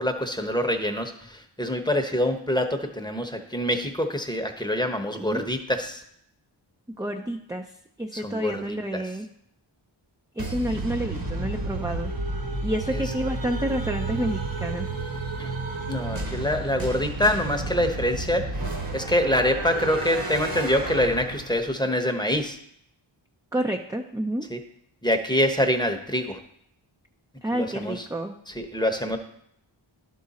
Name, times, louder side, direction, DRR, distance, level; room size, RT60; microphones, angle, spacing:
voice 1, 0.0-6.0 8.1-9.0 12.9-13.0 15.4-15.5 15.9-18.5 18.9-22.6 24.5-24.6 25.0-26.4 27.5-28.0 28.5-29.2, left 1 dB, 10° left, 5 dB, 0.9 m, -25 dB
voice 2, 7.0-7.6 8.0-9.3 10.4-12.1 12.6-14.9 23.5-24.5 27.4-28.3, right 1 dB, 10° right, 3 dB, 0.5 m, -29 dB
sound 1, 10.4-21.8, right 2 dB, 45° right, 1.2 m, -31 dB
11.5 x 3.8 x 4.1 m, 0.72 s
wide cardioid pair, 45°, 49 cm